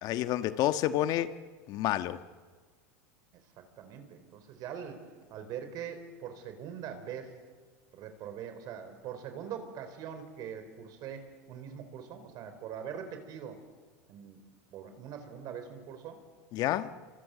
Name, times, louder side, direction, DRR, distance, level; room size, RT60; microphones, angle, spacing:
voice 1, 0.0-1.3 1.7-2.2 16.5-16.9, left 13 dB, 50° left, 1.4 m, -29 dB
voice 2, 3.8-5.0 5.3-7.4 7.9-13.6 14.1-14.4 14.7-16.2, right 8 dB, 50° right, 4.4 m, -42 dB
27.0 x 24.5 x 7.8 m
supercardioid pair, 110°, 8 cm